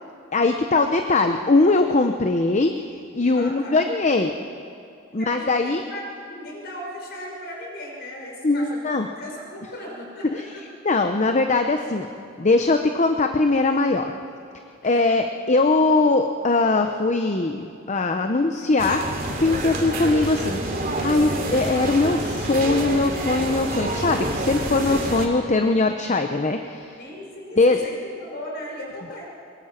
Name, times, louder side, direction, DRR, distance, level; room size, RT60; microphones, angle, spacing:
voice 1, 0.3-2.7 3.1-4.3 5.1-5.8 8.4-9.1 10.2-10.4 10.8-12.1 12.4-14.1 14.8-19.0 19.4-20.6 21.0-26.9 27.6-27.8, left 3 dB, 35° left, 6 dB, 0.8 m, -21 dB
voice 2, 3.3-3.8 5.2-10.6 14.8-15.1 27.0-29.3, left 1 dB, 55° left, -1 dB, 5.4 m, -37 dB
sound 1, 18.8-25.3, right 1 dB, 45° right, 2.8 m, -27 dB
22.5 x 21.5 x 5.9 m, 2.5 s
head